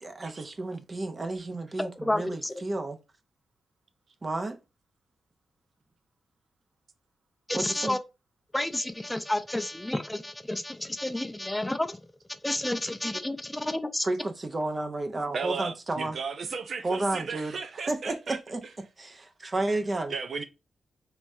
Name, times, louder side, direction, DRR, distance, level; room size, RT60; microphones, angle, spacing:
voice 1, 0.0-3.0 4.2-4.6 7.5-8.0 14.0-16.2 16.8-17.5 17.9-18.7 19.0-20.1, right 2 dB, 40° right, 0.7 m, -32 dB
voice 2, 1.8-2.7 7.5-8.0 8.5-12.0 12.4-14.1, left 1 dB, 15° left, 0.4 m, -30 dB
voice 3, 15.3-18.4 20.1-20.4, right 5 dB, 65° right, 0.4 m, -35 dB
3.4 x 3.0 x 2.6 m
supercardioid pair, 40°, 0 cm